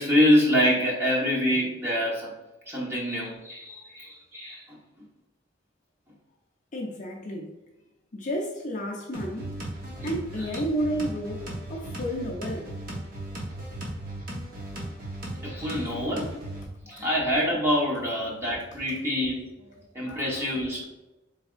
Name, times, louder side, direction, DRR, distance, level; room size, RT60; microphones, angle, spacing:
voice 1, 0.0-2.3 2.7-4.8 10.4-10.5 15.4-16.3 16.9-19.5 19.9-20.8, equal, 15° right, 1.0 m, -25 dB
voice 2, 6.7-7.5 8.1-9.5 10.0-12.7 17.0-17.1, equal, 40° left, 0.5 m, -31 dB
sound 1, 9.1-16.6, right 1 dB, 45° right, 0.9 m, -37 dB
4.0 x 3.4 x 2.4 m
head